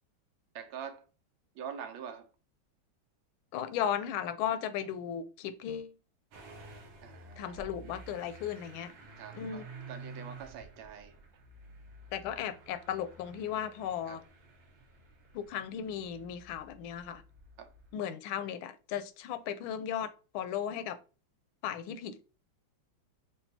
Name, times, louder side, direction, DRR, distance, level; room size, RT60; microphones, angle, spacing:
voice 1, 0.5-1.0 1.5-2.3 7.0-7.7 9.2-11.2 14.1-14.2 17.6-17.7, right 7 dB, 90° right, 1.5 m, -45 dB
voice 2, 3.5-5.9 7.4-8.9 9.3-9.6 12.1-14.2 15.3-17.2 17.9-21.0 21.6-22.2, left 9 dB, 85° left, 1.4 m, -36 dB
Motor vehicle (road) / Engine starting, 6.3-17.9, right 3 dB, 75° right, 1.9 m, -51 dB
6.9 x 2.6 x 2.7 m
omnidirectional pair, 2.2 m